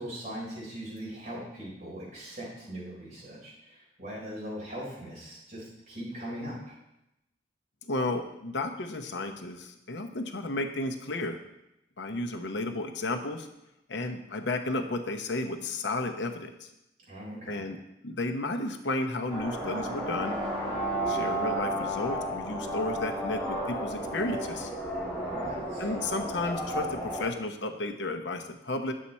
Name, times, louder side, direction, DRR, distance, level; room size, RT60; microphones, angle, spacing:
voice 1, 0.0-6.8 17.1-17.7 25.2-25.9, equal, 40° right, -5 dB, 4.1 m, -40 dB
voice 2, 7.8-11.4 12.0-13.5 13.9-16.7 17.5-17.8 18.0-20.4 21.1-24.7 25.8-28.9, left 2 dB, 80° left, 5 dB, 0.9 m, -33 dB
sound 1, 19.3-27.3, right 1 dB, 5° left, 3.0 m, -32 dB
9.8 x 7.5 x 4.3 m, 0.88 s
head